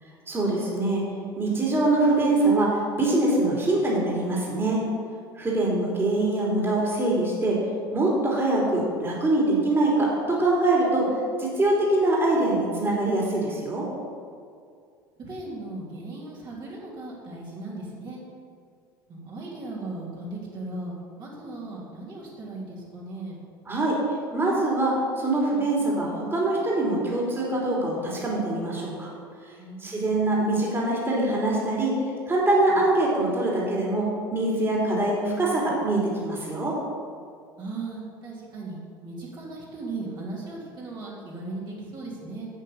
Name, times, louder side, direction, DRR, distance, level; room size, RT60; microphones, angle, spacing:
voice 1, 0.3-1.0 1.4-4.8 5.4-7.6 7.9-13.9 23.7-24.0 24.3-29.1 29.8-36.8, right 2 dB, 20° right, -4 dB, 3.2 m, -24 dB
voice 2, 13.7-14.1 15.2-18.2 19.1-23.4 29.6-30.0 32.7-32.8 34.8-35.0 37.6-42.5, right 2 dB, 40° right, -5 dB, 3.2 m, -37 dB
8.3 x 8.3 x 7.1 m, 2.3 s
figure-of-eight pair, 65°, 12 cm